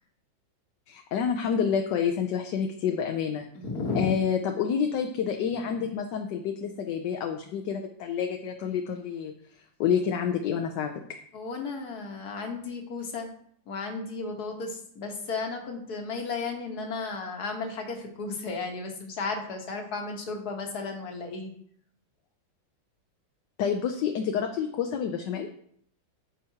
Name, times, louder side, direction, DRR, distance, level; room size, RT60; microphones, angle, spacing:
voice 1, 0.9-3.5 3.9-9.3 9.8-10.9 23.6-25.5, left 7 dB, 70° left, 5 dB, 1.2 m, -28 dB
voice 2, 3.5-4.1 11.3-13.3 13.7-21.5, left 4 dB, 55° left, 3 dB, 1.7 m, -34 dB
12.5 x 5.0 x 2.8 m, 0.64 s
omnidirectional pair, 2.1 m